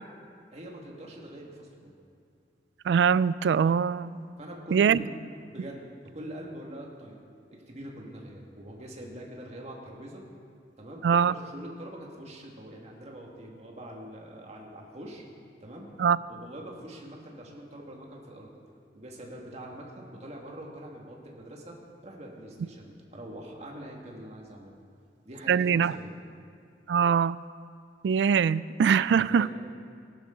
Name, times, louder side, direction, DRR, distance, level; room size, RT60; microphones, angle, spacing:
voice 1, 0.5-1.9 4.4-5.1 5.4-7.2 7.6-10.2 10.8-15.2 15.6-15.9 16.3-18.5 18.9-21.8 22.0-24.7 25.3-26.1 29.4-29.5, right 1 dB, 40° right, -1 dB, 2.0 m, -43 dB
voice 2, 2.9-4.2 4.7-5.0 11.0-11.3 16.0-16.2 25.5-25.9 26.9-27.4 28.0-29.5, right 7 dB, 75° right, 18 dB, 0.3 m, -22 dB
18.5 x 11.5 x 3.8 m, 2.3 s
head